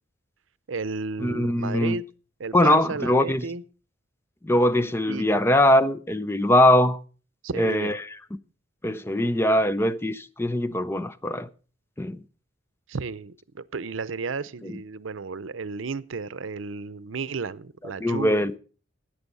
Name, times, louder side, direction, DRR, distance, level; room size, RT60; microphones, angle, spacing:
voice 1, 0.7-2.1 2.4-3.6 5.1-5.4 7.4-8.0 12.9-18.5, right 4 dB, 85° right, 0.6 m, -33 dB
voice 2, 1.2-2.0 2.5-3.5 4.4-7.0 7.6-8.2 8.8-11.5 12.0-12.2 14.6-14.7 18.0-18.6, left 1 dB, 10° left, 0.5 m, -22 dB
13.5 x 9.0 x 5.4 m
head